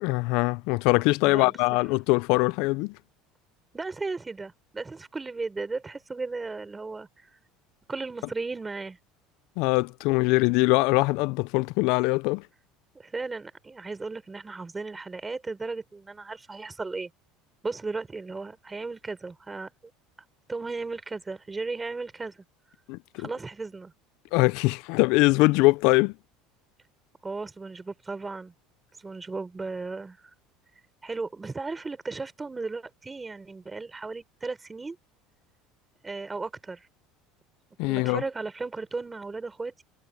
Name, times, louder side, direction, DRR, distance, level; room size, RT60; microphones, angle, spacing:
voice 1, 0.0-2.9 9.6-12.4 22.9-23.3 24.3-26.1 37.8-38.2, left 24 dB, 70° left, 0.3 m, -22 dB
voice 2, 3.7-7.1 7.9-9.0 12.9-17.1 17.6-19.7 20.5-22.4 23.2-23.9 27.2-28.5 29.0-30.2 31.0-35.0 36.0-36.9 37.8-39.8, right 3 dB, 15° right, 4.5 m, -35 dB
cardioid pair, 135°, 0 cm